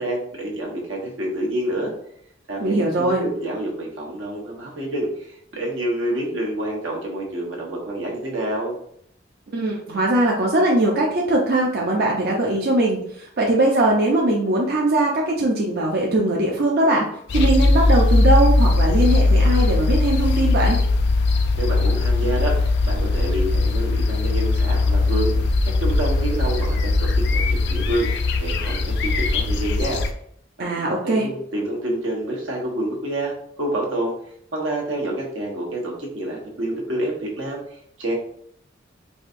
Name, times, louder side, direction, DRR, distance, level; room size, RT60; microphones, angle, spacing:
voice 1, 0.0-1.9 2.5-8.8 21.6-25.3 25.6-30.0 30.6-34.1 34.5-38.1, right 1 dB, 85° right, -2 dB, 1.1 m, -28 dB
voice 2, 2.6-3.3 9.5-17.0 17.3-20.8 30.6-31.3, right 1 dB, 55° right, -2 dB, 0.5 m, -20 dB
sound 1, 17.3-30.1, left 2 dB, 60° left, 0.4 m, -19 dB
4.8 x 2.7 x 2.5 m, 0.68 s
head